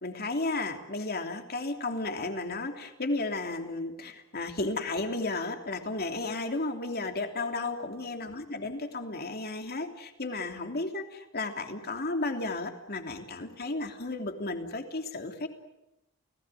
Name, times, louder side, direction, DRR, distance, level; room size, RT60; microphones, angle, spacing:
voice 1, 0.0-15.5, left 2 dB, 50° left, 5 dB, 3.1 m, -33 dB
29.5 x 19.0 x 9.2 m, 0.93 s
head